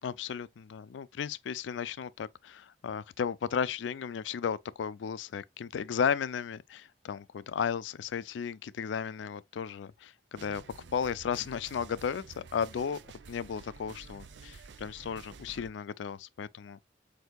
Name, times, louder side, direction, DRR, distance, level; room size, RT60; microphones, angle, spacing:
voice 1, 0.0-10.6 10.9-13.0 13.3-16.8, left 7 dB, 80° left, 0.4 m, -34 dB
sound 1, 10.3-15.7, right 4 dB, 70° right, 0.5 m, -51 dB
7.9 x 2.7 x 2.2 m
head